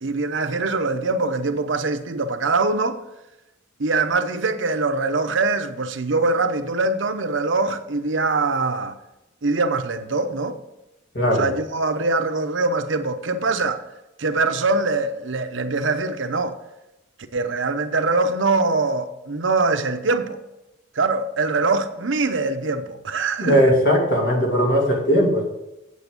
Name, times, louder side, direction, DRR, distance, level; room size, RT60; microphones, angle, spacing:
voice 1, 0.0-3.0 3.8-9.0 9.4-10.6 11.3-13.8 14.2-16.6 17.3-20.4 21.0-23.6, right 3 dB, 75° right, 0.8 m, -23 dB
voice 2, 11.1-11.5 23.4-25.4, equal, 60° left, 2.5 m, -18 dB
8.3 x 7.8 x 5.3 m
head